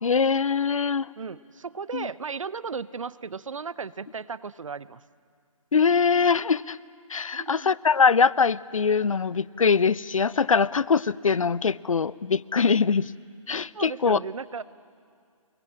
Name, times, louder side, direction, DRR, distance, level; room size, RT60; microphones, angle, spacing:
voice 1, 0.0-1.1 1.9-2.1 5.7-6.8 7.1-13.1 13.5-14.2, left 5 dB, 70° left, 20 dB, 0.6 m, -22 dB
voice 2, 1.2-5.0 7.3-7.7 13.7-14.6, right 5 dB, 65° right, 18 dB, 0.7 m, -35 dB
28.5 x 21.5 x 8.8 m, 2.3 s
figure-of-eight pair, 150°, 18 cm